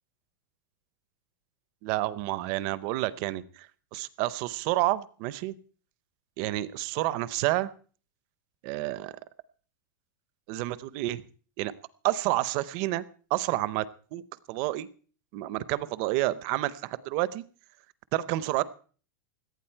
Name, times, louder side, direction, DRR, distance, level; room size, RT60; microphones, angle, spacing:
voice 1, 1.8-3.7 3.9-5.5 6.4-7.7 8.6-9.1 10.5-11.2 11.6-11.7 12.0-13.0 13.3-13.9 14.1-14.2 14.5-14.9 15.3-17.4 18.1-18.6, right 17 dB, 30° right, 18 dB, 0.6 m, -29 dB
17.5 x 12.0 x 4.5 m, 0.41 s
supercardioid pair, 180°, 11 cm